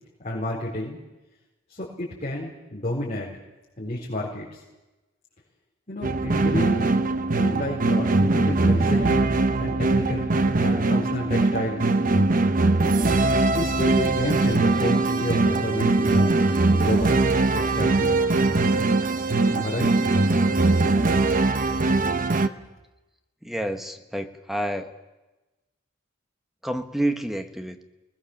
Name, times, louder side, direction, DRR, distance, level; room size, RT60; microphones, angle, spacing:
voice 1, 0.2-1.0 1.7-3.3 3.8-4.6 5.9-6.9 7.4-11.9 13.4-16.3 16.7-17.2 17.5-18.4 19.5-19.9, left 1 dB, 35° left, -5 dB, 4.5 m, -30 dB
sound 1, 6.0-22.5, right 2 dB, 40° right, 0.9 m, -21 dB
voice 2, 23.4-24.9 26.6-27.8, right 1 dB, ahead, 7 dB, 1.3 m, -29 dB
25.5 x 20.0 x 7.3 m, 1.1 s
head